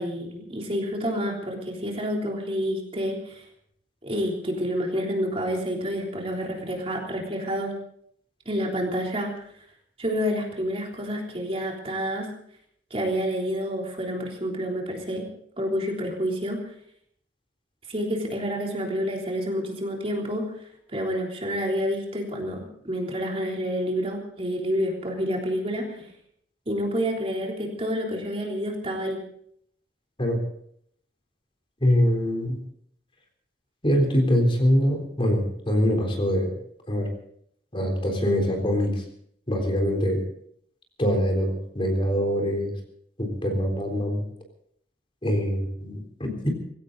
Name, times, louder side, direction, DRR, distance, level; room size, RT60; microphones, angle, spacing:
voice 1, 0.0-3.4 4.0-7.7 8.4-9.4 10.0-12.3 12.9-15.2 15.6-16.6 17.9-20.5 20.9-26.1 26.7-29.2, equal, 35° right, 0 dB, 3.5 m, -28 dB
voice 2, 31.8-32.6 33.8-36.6 36.9-37.1 37.7-39.0 39.5-40.2 41.0-42.7 43.2-44.2 45.2-46.5, equal, 30° left, 3 dB, 3.8 m, -23 dB
19.5 x 16.5 x 4.1 m, 0.67 s
head